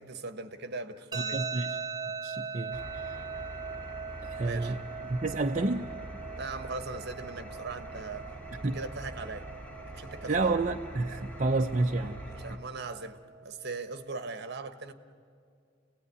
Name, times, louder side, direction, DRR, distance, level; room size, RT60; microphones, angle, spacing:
voice 1, 0.0-1.4 4.4-4.7 6.4-8.3 8.6-9.5 9.9-10.6 12.3-14.9, right 3 dB, 55° right, 9 dB, 1.3 m, -40 dB
sound 1, 1.1-14.1, right 5 dB, 25° right, 1.7 m, -41 dB
voice 2, 1.3-1.8 2.2-3.2 4.2-4.8 5.1-5.9 8.6-8.8 10.3-12.2, right 3 dB, 40° right, 2 dB, 0.7 m, -30 dB
Engine, 2.7-12.6, right 1 dB, 10° left, 2.2 m, -44 dB
29.0 x 18.0 x 9.7 m, 2.4 s
head